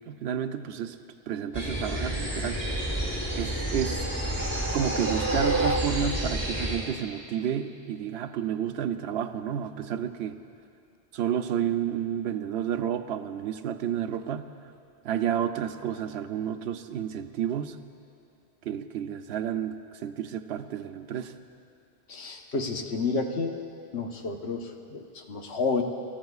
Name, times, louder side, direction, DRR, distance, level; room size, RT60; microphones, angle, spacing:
voice 1, 0.1-1.0 1.3-2.6 3.3-4.1 4.7-10.4 11.1-14.5 15.0-17.8 18.6-21.3, right 9 dB, 80° right, 9 dB, 0.8 m, -31 dB
sound 1, 1.5-6.8, right 1 dB, 10° left, 4.2 m, -30 dB
sound 2, 3.1-6.4, right 2 dB, 20° right, 0.5 m, -31 dB
voice 2, 22.1-23.6 23.9-25.8, left 4 dB, 85° left, 3 dB, 1.3 m, -30 dB
27.0 x 13.0 x 2.4 m, 2.5 s
omnidirectional pair, 1.1 m